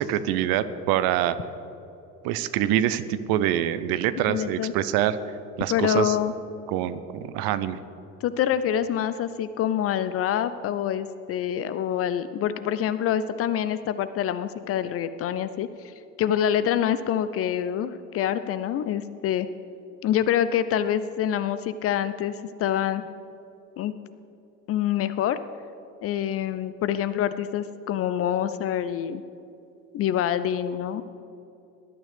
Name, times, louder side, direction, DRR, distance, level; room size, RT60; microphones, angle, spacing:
voice 1, 0.0-1.4 2.2-5.2 5.6-6.2 6.7-7.8, right 11 dB, 50° right, 13 dB, 0.8 m, -25 dB
voice 2, 4.3-4.7 5.7-6.3 8.2-19.5 20.0-23.1 23.8-23.9 24.7-25.4 26.0-29.2 29.9-31.0, left 10 dB, 30° left, 13 dB, 0.5 m, -26 dB
20.0 x 11.5 x 3.3 m, 2.8 s
figure-of-eight pair, 65°, 47 cm